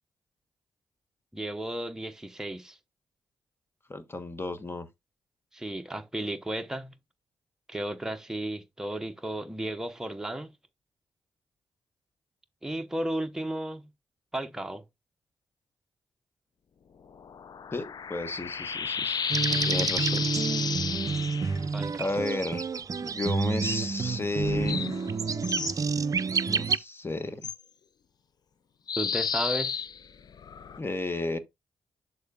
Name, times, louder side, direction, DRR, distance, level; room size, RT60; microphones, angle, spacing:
voice 1, 1.3-2.8 5.5-6.9 7.7-10.5 12.6-13.9 14.3-14.8 19.7-19.9 21.7-22.1 29.0-29.8, right 1 dB, 5° right, 0.9 m, -34 dB
voice 2, 3.9-4.9 17.7-19.2 19.7-20.3 22.0-22.6 23.0-24.9 26.5-27.5 30.8-31.4, left 2 dB, 30° left, 1.3 m, -33 dB
sound 1, 17.1-21.6 24.4-25.8 27.4-27.6 28.9-30.8, left 6 dB, 55° left, 0.7 m, -32 dB
sound 2, 19.3-26.8, right 5 dB, 45° right, 0.5 m, -29 dB
11.5 x 4.0 x 2.4 m
supercardioid pair, 45°, 8 cm